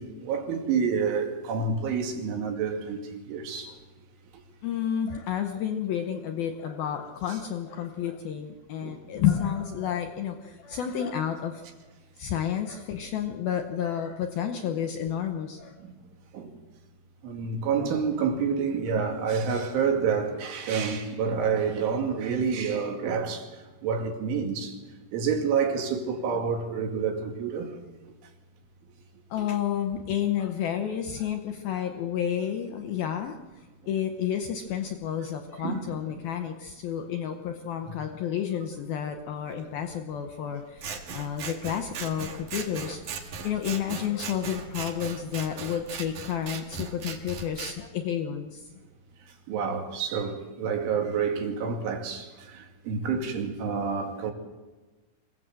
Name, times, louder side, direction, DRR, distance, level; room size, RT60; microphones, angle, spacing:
voice 1, 0.0-3.7 8.8-9.0 15.8-15.9 16.3-16.5 17.2-23.5 23.8-24.7 25.1-27.7 29.4-29.5 35.6-35.9 49.5-54.3, right 6 dB, 80° right, 4.8 m, -28 dB
voice 2, 4.6-11.6 12.2-15.7 29.3-33.4 33.8-43.0 43.4-48.7, left 9 dB, 75° left, 2.3 m, -30 dB
Scissors, 40.8-47.8, right 5 dB, 55° right, 2.6 m, -38 dB
25.5 x 17.0 x 7.7 m
omnidirectional pair, 5.5 m